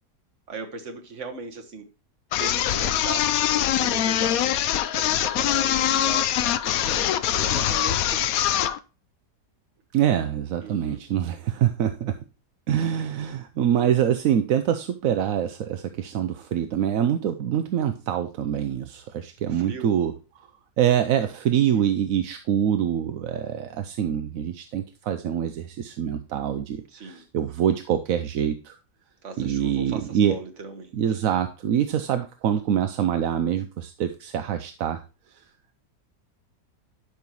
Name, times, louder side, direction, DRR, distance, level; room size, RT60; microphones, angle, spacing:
voice 1, 0.5-1.9 2.4-8.7 10.6-11.0 19.5-19.9 21.6-21.8 26.9-27.2 29.2-30.9, right 4 dB, 50° right, 4 dB, 1.6 m, -39 dB
sound 1, 2.3-8.8, left 11 dB, 70° left, 0.9 m, -23 dB
voice 2, 9.9-12.2 12.7-20.1 20.8-28.8 29.4-30.4 30.9-35.0 35.3-35.4, right 9 dB, 65° right, 8 dB, 0.9 m, -25 dB
11.5 x 5.5 x 3.0 m, 0.32 s
omnidirectional pair, 1.8 m